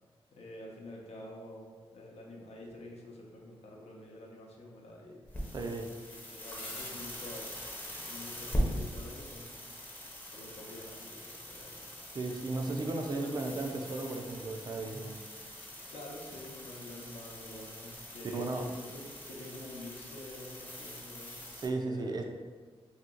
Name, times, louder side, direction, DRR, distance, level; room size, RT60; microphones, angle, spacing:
voice 1, 0.3-5.6 6.2-9.9 10.2-11.8 15.9-21.5 21.9-22.2, left 1 dB, 90° left, -1 dB, 0.7 m, -48 dB
sound 1, 5.2-21.7, equal, 15° left, 0.6 m, -41 dB
voice 2, 5.5-5.9 12.1-15.2 18.3-18.7 21.5-22.2, right 2 dB, 40° right, 3 dB, 0.4 m, -35 dB
2.8 x 2.8 x 3.7 m, 1.5 s
wide cardioid pair, 165°, 10 cm